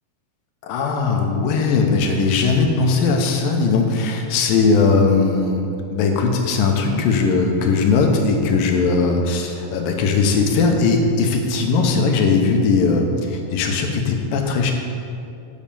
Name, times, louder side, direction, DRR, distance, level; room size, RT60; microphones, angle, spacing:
voice 1, 0.6-14.7, left 4 dB, 85° left, 3 dB, 2.6 m, -19 dB
7.4 x 7.2 x 7.0 m, 2.5 s
omnidirectional pair, 4.0 m